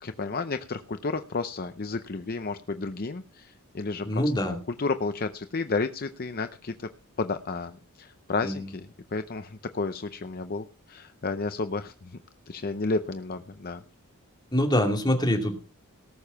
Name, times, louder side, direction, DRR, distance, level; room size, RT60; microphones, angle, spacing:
voice 1, 0.0-4.2 4.8-6.9 7.2-12.2 12.5-13.8, left 3 dB, 40° left, 9 dB, 0.6 m, -32 dB
voice 2, 4.0-4.6 8.4-8.6 14.5-15.5, left 1 dB, 20° left, 2 dB, 2.6 m, -24 dB
18.5 x 6.9 x 5.8 m, 0.38 s
head